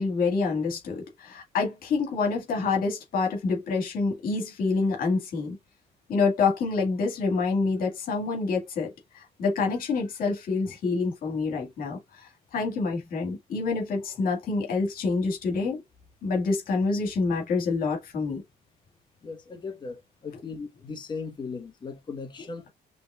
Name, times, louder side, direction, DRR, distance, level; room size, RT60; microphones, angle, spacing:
voice 1, 0.0-5.6 6.1-12.0 12.5-15.8 16.2-18.4, left 4 dB, 55° left, 2.0 m, -27 dB
voice 2, 19.2-22.6, left 4 dB, 25° left, 1.2 m, -37 dB
5.3 x 3.2 x 2.4 m
cardioid pair, 110°, 17 cm